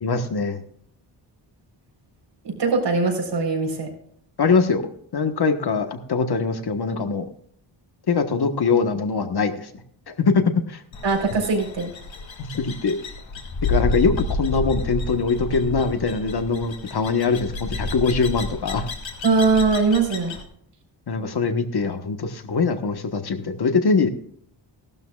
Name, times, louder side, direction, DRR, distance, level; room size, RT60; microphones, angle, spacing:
voice 1, 0.0-0.6 4.4-7.2 8.1-9.7 10.1-10.8 12.6-13.0 13.6-18.9 21.1-24.1, left 4 dB, 50° left, 8 dB, 1.4 m, -22 dB
voice 2, 2.4-3.9 11.0-11.9 19.2-20.4, right 4 dB, 60° right, 3 dB, 4.2 m, -21 dB
sound 1, 10.9-20.4, left 3 dB, 70° left, 2.6 m, -30 dB
16.5 x 12.5 x 2.4 m, 0.64 s
wide cardioid pair, 115°, 48 cm